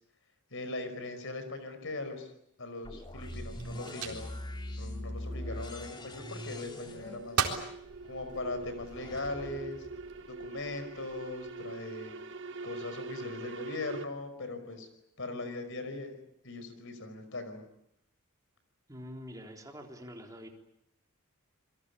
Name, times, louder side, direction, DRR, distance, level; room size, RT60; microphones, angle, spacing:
voice 1, 0.5-2.3 2.6-4.3 4.8-7.5 8.1-9.9 10.3-12.1 12.6-14.9 15.2-16.2 16.4-17.6, left 2 dB, 60° left, 10 dB, 5.3 m, -40 dB
sound 1, 2.8-10.7, left 1 dB, 20° left, 2.8 m, -43 dB
sound 2, 2.9-6.0 6.5-7.1 7.3-7.7 8.3-9.0 9.7-10.1, right 6 dB, 80° right, 4.0 m, -37 dB
sound 3, 3.5-14.0, right 3 dB, 55° right, 1.5 m, -45 dB
voice 2, 18.9-20.5, equal, 15° right, 2 dB, 3.8 m, -45 dB
28.0 x 22.5 x 8.5 m, 0.76 s
head